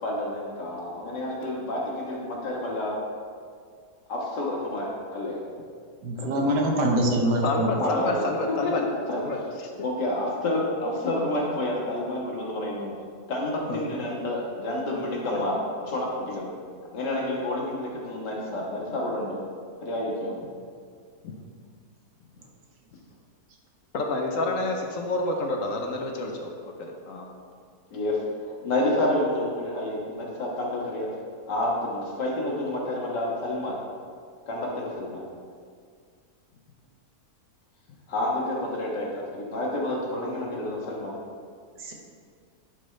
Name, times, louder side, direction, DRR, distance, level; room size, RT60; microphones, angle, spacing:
voice 1, 0.0-3.0 4.1-5.4 6.2-6.5 7.8-8.2 8.5-9.2 9.8-12.9 13.3-15.6 15.9-16.5 16.9-19.5 19.8-20.3 27.9-28.2 28.6-31.1 31.5-33.8 34.5-35.2 38.1-41.2, left 1 dB, 90° left, -3 dB, 2.1 m, -29 dB
voice 2, 6.0-7.7 41.8-41.9, right 1 dB, 90° right, 0 dB, 1.7 m, -24 dB
voice 3, 7.4-8.8 9.2-9.4 13.7-13.8 15.3-15.4 21.2-21.3 23.9-27.3, left 2 dB, 60° left, 2 dB, 1.1 m, -28 dB
11.5 x 5.3 x 3.3 m, 2.1 s
omnidirectional pair, 1.8 m